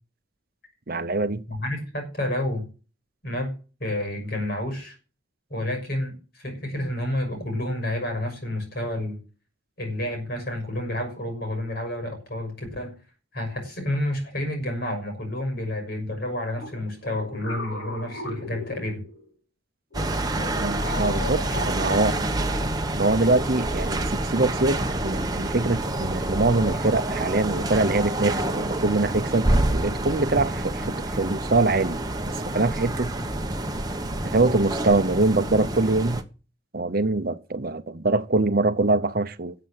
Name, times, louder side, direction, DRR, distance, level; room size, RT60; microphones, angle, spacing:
voice 1, 0.9-1.4 20.6-22.2 23.0-32.0 32.3-33.1 34.2-36.2 36.7-39.5, right 2 dB, 50° right, 0.8 m, -24 dB
voice 2, 1.5-2.7 3.2-3.5 3.8-5.0 5.5-9.2 9.8-13.0 13.3-19.0, left 1 dB, 50° left, 6.4 m, -30 dB
sound 1, 16.6-19.3 19.9-22.6, left 1 dB, 80° left, 4.2 m, -36 dB
sound 2, 19.9-36.2, right 1 dB, 20° right, 1.1 m, -27 dB
13.0 x 7.7 x 7.9 m
head